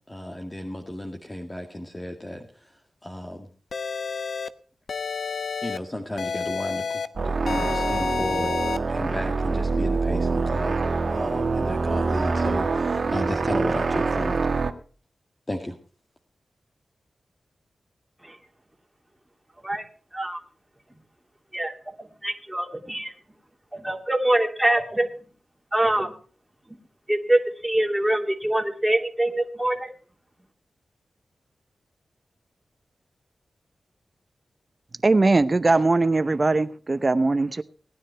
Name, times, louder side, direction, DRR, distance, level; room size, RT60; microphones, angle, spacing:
voice 1, 0.1-3.5 5.6-8.5 8.9-10.8 11.1-14.5 15.5-15.8, left 1 dB, 20° left, 2 dB, 2.0 m, -33 dB
sound 1, 3.7-4.5 4.9-5.8 6.2-7.1 7.5-8.8, left 5 dB, 70° left, 0.8 m, -29 dB
sound 2, 7.2-14.7, right 4 dB, 60° right, 1.5 m, -25 dB
voice 2, 21.5-23.1 23.7-25.1 25.7-26.1 26.7-26.8 27.1-29.9, right 1 dB, 10° right, 2 dB, 2.9 m, -24 dB
voice 3, 35.0-37.6, right 3 dB, 40° right, 12 dB, 0.8 m, -20 dB
18.5 x 9.9 x 4.5 m, 0.41 s
cardioid pair, 45°, 0 cm